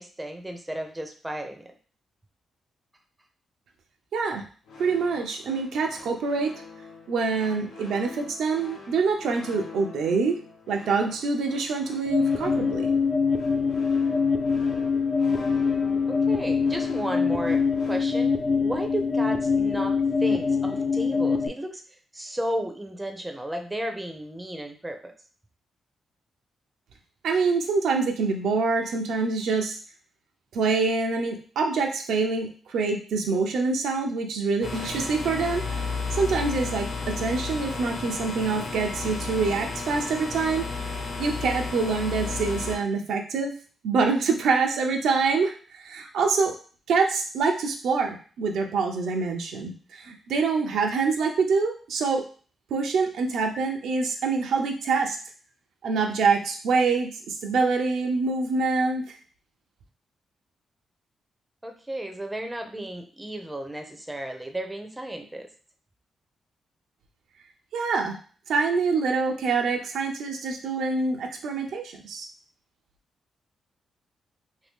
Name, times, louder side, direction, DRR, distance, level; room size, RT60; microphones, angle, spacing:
voice 1, 0.0-1.7 16.1-18.3 18.6-19.9 20.2-21.8 22.1-25.1 61.6-65.5, right 1 dB, 15° right, 4 dB, 0.5 m, -33 dB
voice 2, 4.1-4.4 4.8-6.5 7.1-10.4 10.7-12.9 27.2-29.8 30.5-40.7 41.2-43.5 43.8-46.5 46.9-52.3 52.7-55.2 55.8-59.2 67.7-68.2 68.5-72.3, right 4 dB, 85° right, 2 dB, 0.5 m, -25 dB
sound 1, 4.6-18.0, left 3 dB, 90° left, 0.9 m, -46 dB
sound 2, 12.1-21.5, left 5 dB, 40° left, 0.4 m, -24 dB
sound 3, 34.6-42.8, left 4 dB, 55° left, 1.0 m, -32 dB
2.7 x 2.7 x 3.5 m, 0.40 s
cardioid pair, 90°, 0 cm